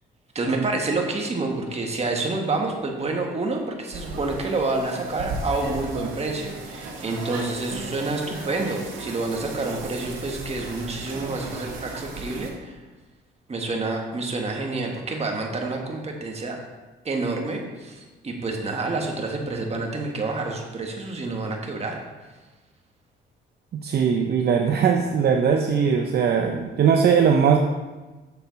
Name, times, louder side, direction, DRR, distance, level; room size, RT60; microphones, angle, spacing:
voice 1, 0.3-12.7 13.5-16.6 17.0-22.0, right 3 dB, 30° right, 1 dB, 1.5 m, -28 dB
sound 1, 3.9-12.5, right 2 dB, 80° right, 1.9 m, -36 dB
voice 2, 23.8-27.6, right 7 dB, 55° right, 4 dB, 0.6 m, -20 dB
7.0 x 6.8 x 4.0 m, 1.2 s
cardioid pair, 90°, 20 cm